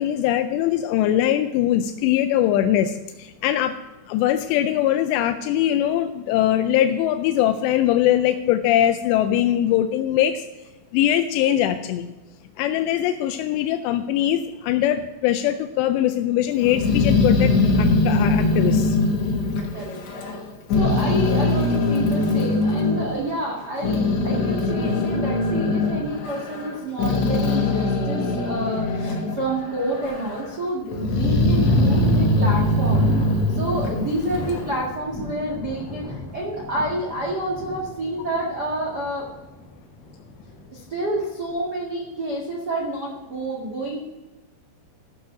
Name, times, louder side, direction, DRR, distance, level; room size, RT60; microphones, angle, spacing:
voice 1, 0.0-3.8 4.1-10.4 10.9-12.1 12.6-19.0, left 11 dB, 85° left, 8 dB, 2.5 m, -21 dB
Growling, 16.6-20.4 20.7-23.0 23.6-29.4 29.8-30.5 30.9-34.7, left 2 dB, 65° left, 1.8 m, -21 dB
voice 2, 19.7-33.1 33.5-39.3 40.7-44.0, right 1 dB, 75° right, -2 dB, 0.9 m, -29 dB
sound 1, 28.7-29.0 29.6-29.7 30.1-30.2 31.3-41.6, left 1 dB, 35° left, 4.6 m, -34 dB
14.0 x 6.5 x 5.8 m, 1.2 s
omnidirectional pair, 5.4 m